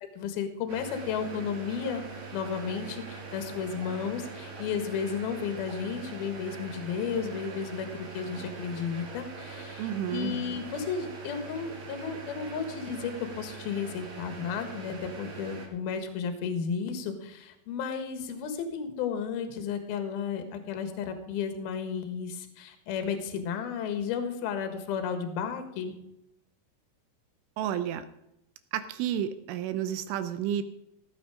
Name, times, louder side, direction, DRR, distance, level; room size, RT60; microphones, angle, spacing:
voice 1, 0.2-2.0 2.3-25.9, left 6 dB, 65° left, 7 dB, 2.8 m, -33 dB
sound 1, 0.7-15.7, right 4 dB, 50° right, 3.9 m, -42 dB
voice 2, 9.8-10.3 27.6-28.1 28.7-30.6, right 10 dB, 80° right, 11 dB, 3.1 m, -31 dB
16.5 x 9.2 x 5.0 m, 0.84 s
omnidirectional pair, 5.9 m